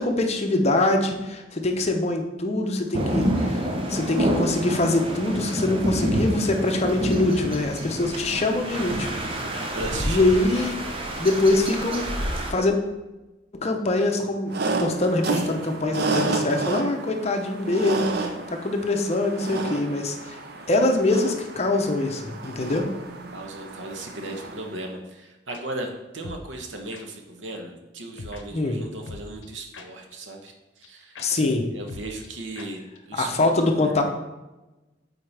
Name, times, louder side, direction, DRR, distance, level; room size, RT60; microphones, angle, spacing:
voice 1, 0.0-9.1 10.1-10.8 11.2-12.1 12.5-12.8 13.5-20.4 20.7-22.9 28.5-28.8 31.2-31.6 33.1-34.0, left 2 dB, 35° left, 4 dB, 0.7 m, -24 dB
sound 1, 2.9-12.5, right 1 dB, 30° right, 0.8 m, -27 dB
voice 2, 9.7-11.0 23.3-32.8 33.1-33.7, right 1 dB, 90° right, 3 dB, 1.0 m, -37 dB
sound 2, 14.5-24.8, right 3 dB, 60° right, 0.7 m, -31 dB
sound 3, 25.5-25.6 26.2-26.5 26.9-27.0 28.2-28.4 29.1-30.1 30.5-30.6 30.8-30.9 31.2-31.3 31.5-31.6 31.9-32.3 32.6-32.7 33.0-33.1 33.3-33.4, left 3 dB, 80° left, 0.7 m, -41 dB
8.4 x 4.3 x 3.4 m, 1.1 s
head